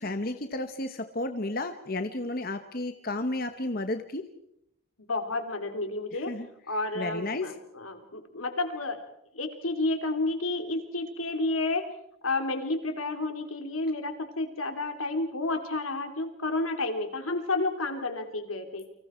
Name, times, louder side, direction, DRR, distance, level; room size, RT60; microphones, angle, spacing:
voice 1, 0.0-4.2 6.1-6.5 6.9-7.5, left 2 dB, 45° left, 8 dB, 1.2 m, -32 dB
voice 2, 5.0-6.3 6.7-9.0 9.3-11.9 12.2-18.8, left 2 dB, 90° left, 6 dB, 3.1 m, -31 dB
30.0 x 25.0 x 4.5 m, 0.78 s
head